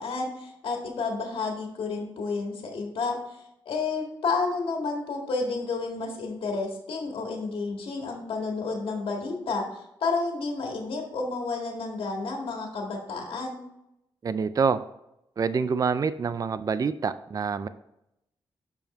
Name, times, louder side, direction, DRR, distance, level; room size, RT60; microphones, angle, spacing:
voice 1, 0.0-13.6, left 4 dB, 80° left, 1 dB, 1.8 m, -31 dB
voice 2, 14.2-14.8 15.4-17.7, right 5 dB, 40° right, 14 dB, 0.4 m, -26 dB
7.0 x 5.4 x 4.3 m, 0.83 s
cardioid pair, 90°, 9 cm